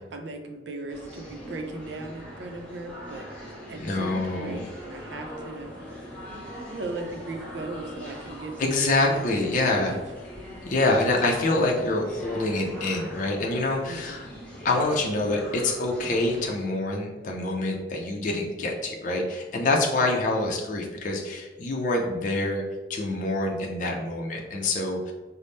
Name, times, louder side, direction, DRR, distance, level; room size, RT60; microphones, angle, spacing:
voice 1, 0.0-3.3 3.7-5.7 6.7-9.5 9.8-10.0 13.9-14.2, right 2 dB, 90° right, 4 dB, 0.5 m, -37 dB
sound 1, 0.9-16.5, equal, 10° left, 0.8 m, -41 dB
voice 2, 3.8-4.6 8.6-10.0 10.7-14.3 14.6-22.6 22.9-25.1, left 2 dB, 45° left, 0 dB, 0.4 m, -26 dB
3.9 x 2.0 x 3.4 m, 1.3 s
head